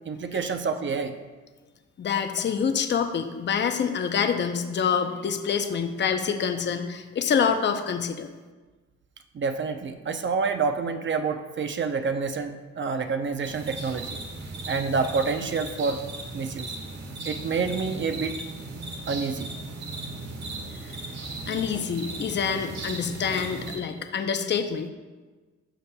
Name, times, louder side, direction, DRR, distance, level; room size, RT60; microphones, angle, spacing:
voice 1, 0.1-1.1 9.3-14.1 14.7-16.0 16.3-16.7 17.2-18.4 19.1-19.5, right 5 dB, 40° right, 7 dB, 0.7 m, -28 dB
voice 2, 2.0-8.3 20.7-21.0 21.5-24.9, left 6 dB, 35° left, 7 dB, 0.6 m, -26 dB
sound 1, 13.4-23.8, right 2 dB, 60° right, 1.6 m, -37 dB
12.5 x 6.5 x 2.3 m, 1.3 s
cardioid pair, 90°, 30 cm